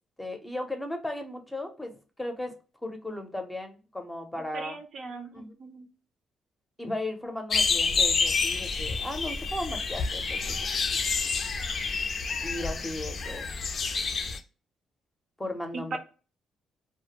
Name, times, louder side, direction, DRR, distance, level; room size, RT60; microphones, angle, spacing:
voice 1, 0.2-1.9 2.2-2.5 2.8-4.8 5.3-5.5 6.8-10.7 10.9-11.0 12.4-13.5 15.4-16.0, left 1 dB, 10° left, 4 dB, 0.6 m, -36 dB
voice 2, 4.5-5.9 15.7-16.0, right 3 dB, 65° right, 5 dB, 0.5 m, -38 dB
sound 1, 7.5-14.4, left 4 dB, 50° left, 0.4 m, -28 dB
2.2 x 2.1 x 2.8 m, 0.36 s
cardioid pair, 90°, 0 cm